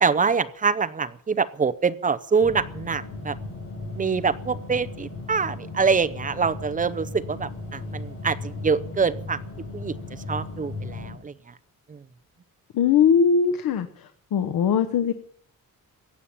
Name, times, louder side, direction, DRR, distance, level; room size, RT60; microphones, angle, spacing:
voice 1, 0.0-3.4 4.0-9.4 9.7-10.0 10.3-11.3 11.9-12.0, right 5 dB, 25° right, 14 dB, 0.6 m, -25 dB
sound 1, 2.4-11.1, left 2 dB, 40° left, 4.5 m, -36 dB
voice 2, 12.7-13.9 14.3-15.1, left 7 dB, 85° left, 8 dB, 1.1 m, -20 dB
15.5 x 8.8 x 8.6 m, 0.62 s
wide cardioid pair, 165°, 34 cm